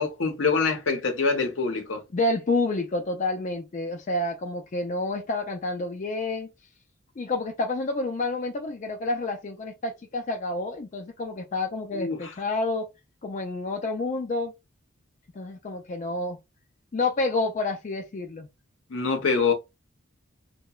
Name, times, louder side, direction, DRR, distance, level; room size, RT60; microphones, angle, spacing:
voice 1, 0.0-2.0 11.9-12.3 18.9-19.5, left 4 dB, 65° left, 0.7 m, -25 dB
voice 2, 2.1-6.5 7.2-12.9 13.2-14.5 15.4-16.4 16.9-18.5, left 2 dB, 35° left, 0.4 m, -29 dB
2.8 x 2.1 x 2.3 m
head